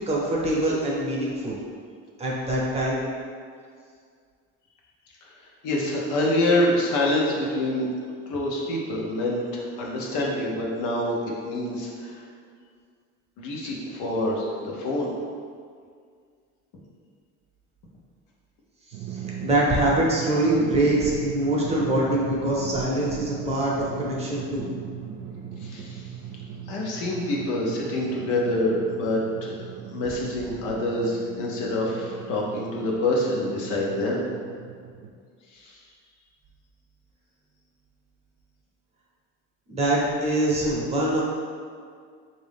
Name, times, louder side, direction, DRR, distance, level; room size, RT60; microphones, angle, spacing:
voice 1, 0.0-1.6 2.2-3.0 19.1-24.7 39.7-41.2, right 1 dB, 20° right, -5 dB, 0.6 m, -24 dB
voice 2, 5.6-7.9 8.3-12.2 13.4-15.1 25.6-26.1 26.7-29.5 29.9-34.2 35.5-35.8, left 1 dB, 80° left, -2 dB, 0.9 m, -26 dB
Drum, 18.9-35.1, right 8 dB, 90° right, 0.5 m, -38 dB
3.6 x 2.6 x 3.4 m, 2.1 s
cardioid pair, 145°, 30 cm